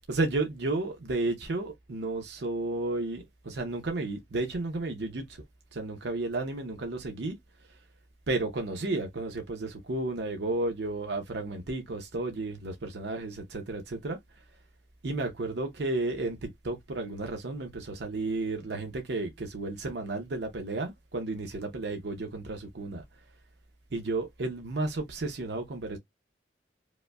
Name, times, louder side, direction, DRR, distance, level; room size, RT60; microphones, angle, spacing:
voice 1, 0.1-5.4 5.7-7.4 8.3-14.2 15.0-23.0 23.9-26.0, right 2 dB, 70° right, 0.7 m, -32 dB
5.0 x 2.1 x 2.2 m
head